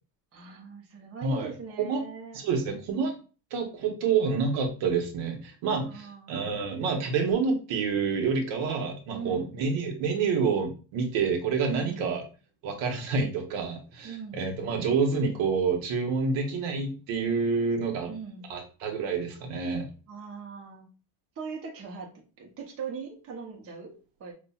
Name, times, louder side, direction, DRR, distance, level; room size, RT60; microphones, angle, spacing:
voice 1, 0.3-2.4 5.7-6.4 9.1-9.6 11.7-12.2 14.0-14.4 18.1-18.4 20.1-20.9 21.4-23.9 24.2-24.3, right 5 dB, 30° right, 0 dB, 0.8 m, -40 dB
voice 2, 1.2-2.0 2.3-3.1 3.5-12.2 12.6-18.1 18.5-19.9, right 5 dB, 70° right, 4 dB, 1.0 m, -28 dB
5.5 x 2.4 x 2.3 m, 0.35 s
cardioid pair, 145°, 48 cm